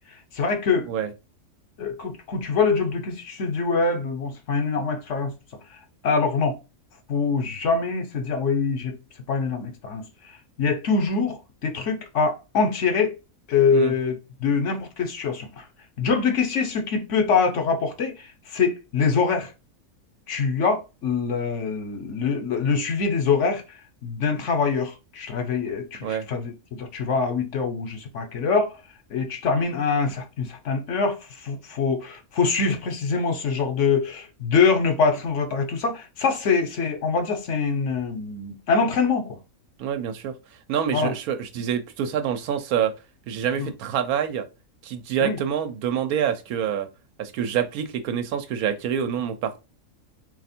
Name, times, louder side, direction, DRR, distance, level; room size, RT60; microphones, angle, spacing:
voice 1, 0.3-0.9 1.8-5.3 6.0-6.6 7.1-9.0 9.3-10.0 10.6-13.1 13.5-15.6 16.0-19.5 20.3-23.6 24.0-28.7 29.1-31.2 31.4-39.4 40.9-41.1 43.6-43.7 45.2-45.4, left 5 dB, 60° left, 1.0 m, -24 dB
voice 2, 39.8-40.3 40.7-42.9 43.3-44.5 44.8-46.9 47.2-49.6, right 8 dB, 90° right, 1.1 m, -26 dB
3.3 x 2.7 x 4.2 m
omnidirectional pair, 1.5 m